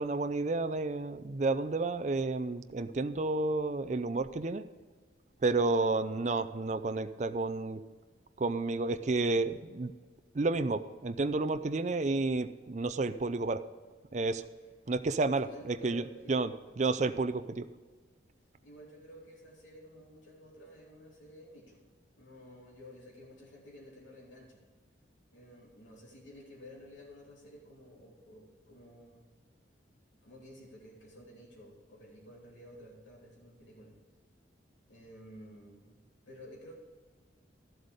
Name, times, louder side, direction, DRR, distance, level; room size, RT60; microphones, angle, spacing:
voice 1, 0.0-4.6 5.4-7.8 8.4-9.9 10.3-13.6 14.1-14.4 14.9-17.7, right 3 dB, 40° right, 10 dB, 0.5 m, -31 dB
voice 2, 5.6-5.9 15.3-16.4 18.6-21.8 22.2-24.6 25.3-29.3 30.2-34.0 34.9-36.0 36.3-36.8, left 1 dB, 85° left, -3 dB, 3.1 m, -52 dB
12.5 x 7.8 x 5.2 m, 1.4 s
head